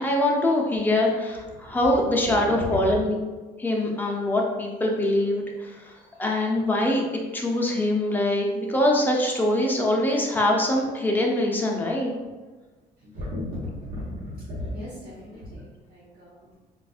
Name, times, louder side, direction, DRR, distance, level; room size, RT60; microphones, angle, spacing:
voice 1, 0.0-3.1 3.6-7.0 7.3-12.1, left 1 dB, 10° left, -1 dB, 0.6 m, -23 dB
voice 2, 1.5-3.0 6.0-6.1 13.0-16.6, left 1 dB, 55° right, -10 dB, 1.1 m, -36 dB
4.0 x 2.5 x 2.4 m, 1.3 s
cardioid pair, 110°, 17 cm